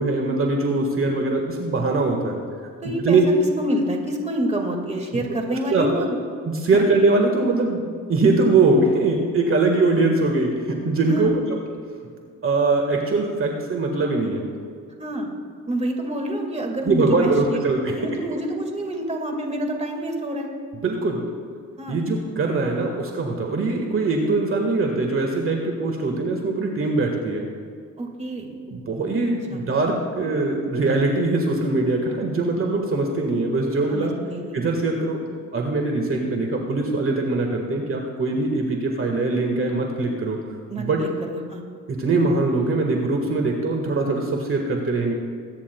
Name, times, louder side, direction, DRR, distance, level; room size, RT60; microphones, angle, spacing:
voice 1, 0.0-2.4 3.0-3.2 5.1-5.2 5.5-6.1 6.4-7.8 8.1-11.4 12.4-14.5 16.8-17.9 20.8-21.2 21.9-27.5 28.7-34.1 34.5-35.2 35.5-40.4 40.8-41.0 41.9-45.1, right 3 dB, 45° right, 2 dB, 1.6 m, -22 dB
voice 2, 2.8-3.2 3.6-6.2 6.7-6.8 11.1-11.4 15.0-15.3 15.7-17.3 17.9-20.5 21.8-22.0 28.0-28.5 29.5-29.6 33.9-34.6 40.7-41.6, right 1 dB, 20° right, 2 dB, 1.9 m, -27 dB
22.5 x 9.9 x 2.3 m, 2.1 s
cardioid pair, 90°, 30 cm